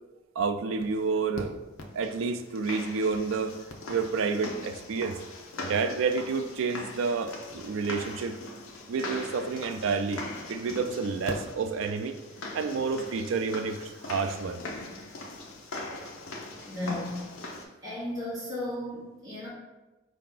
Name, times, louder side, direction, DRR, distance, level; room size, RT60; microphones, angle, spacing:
voice 1, 0.4-1.5 1.9-3.5 3.9-5.2 5.6-8.4 8.9-12.2 12.5-14.6, right 4 dB, 70° right, 9 dB, 0.4 m, -29 dB
sound 1, 0.8-0.9 1.4-1.5 1.8-17.6, left 2 dB, 70° left, 0.7 m, -41 dB
voice 2, 16.6-17.4 17.8-19.5, left 1 dB, 20° right, -10 dB, 1.3 m, -35 dB
4.7 x 2.8 x 3.8 m, 1.1 s
head